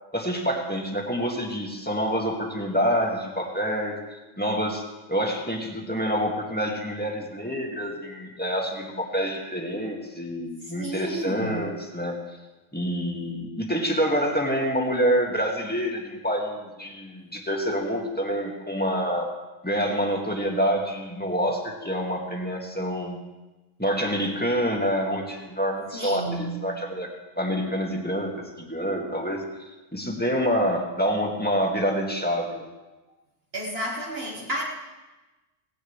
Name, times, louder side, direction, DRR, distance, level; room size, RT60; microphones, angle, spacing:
voice 1, 0.1-4.8 5.1-12.2 12.7-19.3 19.6-23.2 23.8-27.1 27.4-29.4 29.9-32.6, equal, 10° left, 0 dB, 2.0 m, -27 dB
voice 2, 10.6-11.7 25.9-26.7 33.5-34.6, right 1 dB, 55° right, -3 dB, 2.0 m, -32 dB
18.0 x 17.0 x 3.4 m, 1.1 s
omnidirectional pair, 1.2 m